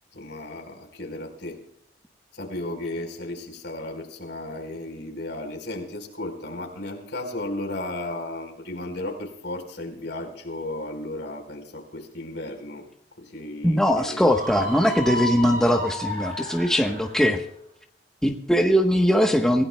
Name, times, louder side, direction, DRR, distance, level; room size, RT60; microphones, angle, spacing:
voice 1, 0.1-1.6 2.3-12.8 13.2-14.2 14.6-15.0, left 1 dB, 65° left, 2 dB, 4.2 m, -34 dB
voice 2, 13.6-17.4 18.2-19.6, equal, 5° left, 3 dB, 1.0 m, -21 dB
Screaming, 14.2-17.2, equal, 45° right, 8.0 m, -32 dB
26.5 x 16.5 x 2.2 m, 0.73 s
head